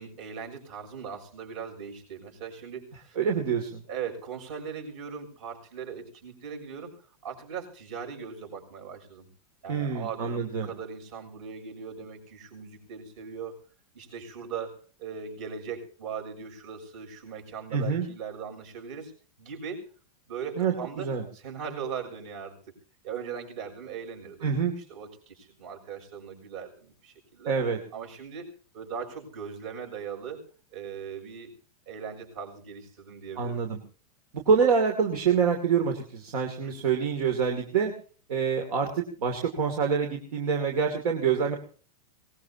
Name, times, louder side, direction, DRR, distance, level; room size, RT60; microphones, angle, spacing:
voice 1, 0.0-3.2 3.9-6.9 7.2-9.3 9.6-13.6 13.9-19.1 19.4-19.8 20.3-21.1 21.3-22.6 23.0-27.5 27.9-28.5 28.7-30.4 30.7-31.5 31.9-33.6 36.6-36.7, right 6 dB, 55° right, 3 dB, 6.8 m, -39 dB
voice 2, 3.2-3.8 9.7-10.7 17.7-18.1 20.6-21.3 24.4-24.7 27.5-27.8 33.4-33.8 34.3-37.9 38.3-41.6, right 6 dB, 75° right, 4 dB, 2.8 m, -26 dB
23.5 x 19.5 x 2.9 m, 0.41 s
supercardioid pair, 155°, 19 cm